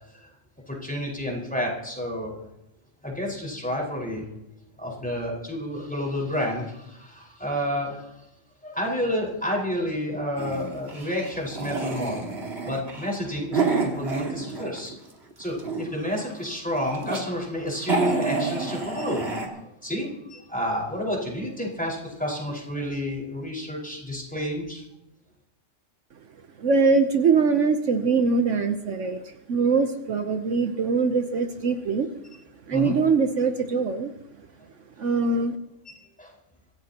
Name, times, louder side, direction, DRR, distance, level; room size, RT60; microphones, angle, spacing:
voice 1, 0.7-2.5 3.0-4.2 4.8-8.1 8.6-12.2 12.6-14.9 15.4-19.5 19.8-24.8 32.7-32.9 35.9-36.3, equal, 5° left, -3 dB, 4.9 m, -30 dB
sound 1, 10.4-15.0 15.3-16.1 16.7-17.2 17.5-17.6 17.8-19.5, right 4 dB, 50° right, 2.5 m, -29 dB
voice 2, 26.6-32.1 32.7-34.1 35.0-35.6, right 4 dB, 70° right, 7 dB, 1.2 m, -22 dB
25.0 x 16.0 x 2.9 m, 0.87 s
omnidirectional pair, 1.4 m